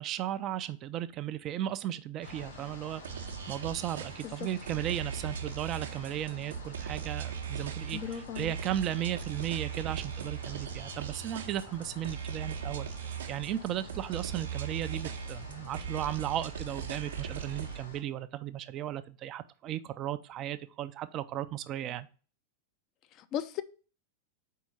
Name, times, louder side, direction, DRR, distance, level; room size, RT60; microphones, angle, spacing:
voice 1, 0.0-22.1, right 12 dB, 35° right, 0.4 m, -36 dB
sound 1, 2.2-18.0, left 2 dB, 80° left, 2.0 m, -48 dB
sound 2, 3.0-17.8, right 8 dB, 65° right, 0.7 m, -39 dB
voice 2, 7.9-8.5 23.2-23.6, left 10 dB, 35° left, 0.5 m, -36 dB
4.6 x 4.4 x 5.6 m
figure-of-eight pair, 90°, 0 cm